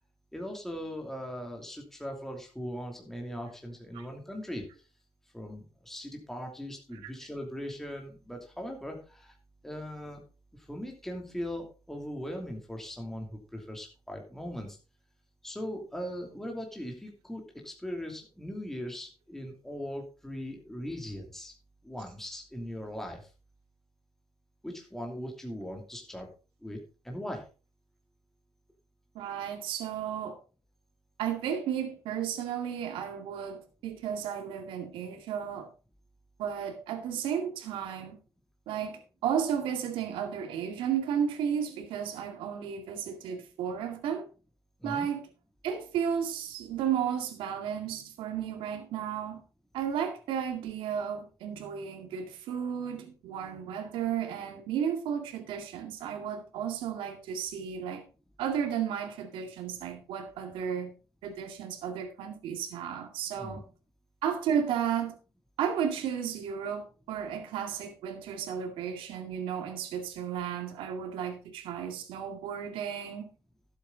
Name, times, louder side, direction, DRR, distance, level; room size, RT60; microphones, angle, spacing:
voice 1, 0.3-4.8 5.3-9.4 9.6-10.2 10.5-14.8 15.4-21.5 21.8-23.3 24.6-26.3 26.6-27.4 44.8-45.1 63.3-63.6, equal, 5° left, 2.8 m, -39 dB
voice 2, 29.1-30.4 31.2-35.7 36.4-38.2 38.7-44.3 44.8-45.3 45.6-49.4 49.7-58.0 58.4-60.9 61.2-63.6 64.2-65.1 65.6-73.3, right 8 dB, 85° right, 2.1 m, -33 dB
12.0 x 8.2 x 3.9 m
cardioid pair, 90°, 9 cm